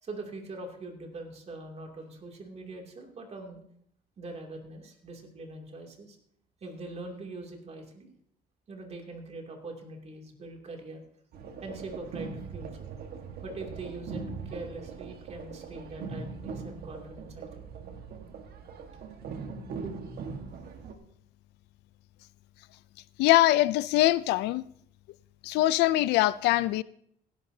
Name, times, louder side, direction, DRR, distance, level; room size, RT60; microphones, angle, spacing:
voice 1, 0.0-3.6 4.2-6.2 6.6-8.1 8.7-11.1 11.6-12.9 13.4-17.7 19.8-20.1, right 2 dB, 40° right, 2.7 m, -42 dB
sound 1, 11.3-20.9, right 5 dB, 65° right, 1.5 m, -41 dB
voice 2, 23.2-24.6 25.4-26.8, left 16 dB, 85° left, 0.4 m, -23 dB
17.5 x 11.5 x 2.8 m
cardioid pair, 110°, 17 cm